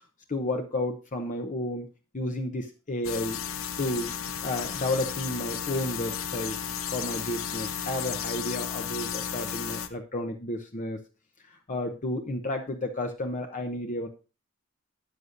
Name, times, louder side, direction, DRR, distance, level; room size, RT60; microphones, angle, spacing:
voice 1, 0.3-1.9 2.1-3.4 3.8-4.1 4.4-6.6 6.9-11.0 11.7-14.1, left 1 dB, 40° left, 4 dB, 0.8 m, -31 dB
sound 1, 3.0-9.9, left 8 dB, 90° left, 0.8 m, -34 dB
13.0 x 9.6 x 2.6 m, 0.33 s
head